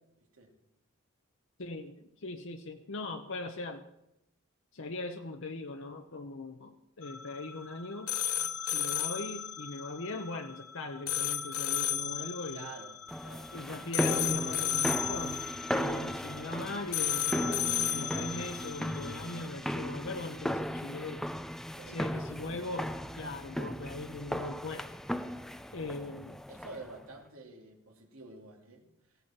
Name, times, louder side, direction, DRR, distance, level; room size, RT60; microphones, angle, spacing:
voice 1, 1.6-3.9 4.7-8.1 8.6-12.7 13.5-15.4 15.7-17.6 17.9-21.2 21.9-24.9 25.7-26.4, left 2 dB, 60° left, 5 dB, 0.9 m, -40 dB
sound 1, 7.0-19.5, left 9 dB, 90° left, 0.7 m, -35 dB
voice 2, 12.2-13.5 21.8-22.3 26.5-28.9, right 3 dB, 80° right, 2 dB, 2.8 m, -49 dB
sound 2, 13.1-27.0, equal, ahead, 0.5 m, -36 dB
17.0 x 16.5 x 4.4 m, 0.87 s
head